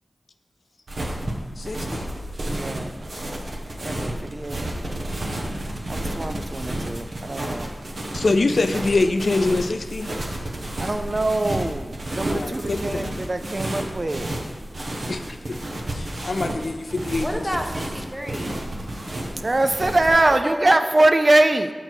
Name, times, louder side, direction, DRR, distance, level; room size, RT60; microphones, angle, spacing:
sound 1, 0.9-20.1, right 1 dB, 70° right, 0.9 m, -31 dB
voice 1, 1.6-2.1 8.1-10.1 12.3-13.1 15.1-15.6 15.9-17.4, left 3 dB, 70° left, 8 dB, 0.3 m, -24 dB
voice 2, 2.5-2.9 3.8-5.2 5.9-7.7 10.8-14.3 19.4-21.7, right 2 dB, 45° right, 8 dB, 0.3 m, -23 dB
voice 3, 17.2-19.1 20.1-20.8, equal, ahead, 4 dB, 0.7 m, -31 dB
6.0 x 3.9 x 4.5 m, 1.5 s
cardioid pair, 45°, 0 cm